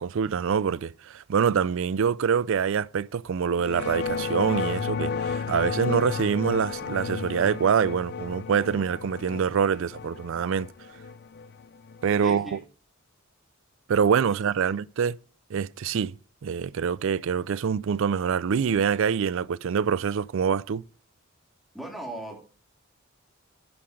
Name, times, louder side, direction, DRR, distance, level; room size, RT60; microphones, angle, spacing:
voice 1, 0.0-10.7 12.0-12.6 13.9-15.2 15.5-16.1 16.4-20.8, right 7 dB, 65° right, 0.4 m, -25 dB
sound 1, 3.6-12.2, left 5 dB, 50° left, 0.5 m, -33 dB
voice 2, 12.2-12.6 14.3-14.7 21.7-22.4, right 1 dB, ahead, 3.3 m, -39 dB
11.0 x 5.7 x 5.1 m
head